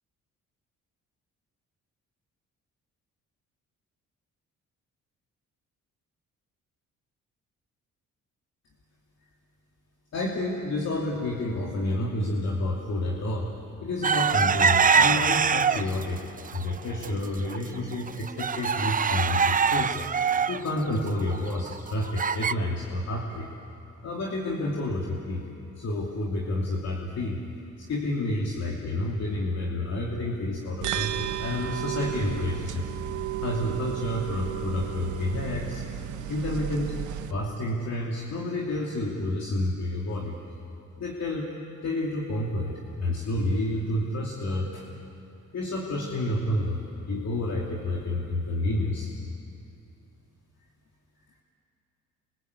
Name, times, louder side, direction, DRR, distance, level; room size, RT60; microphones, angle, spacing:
voice 1, 10.1-13.5 13.8-16.2 16.5-20.0 20.5-23.5 24.0-25.5 25.8-27.4 27.8-32.8 33.4-35.8 36.3-37.0 37.3-40.4 41.0-41.5 41.8-44.8 45.5-46.8 47.1-49.1, left 1 dB, 60° left, -2 dB, 3.0 m, -29 dB
sound 1, 14.0-16.0 16.5-17.1 17.5-17.6 17.9-22.5, right 6 dB, 30° right, 0.6 m, -23 dB
sound 2, 30.8-37.3, right 11 dB, 75° right, 1.1 m, -33 dB
28.0 x 24.5 x 8.5 m, 2.7 s
cardioid pair, 90°, 30 cm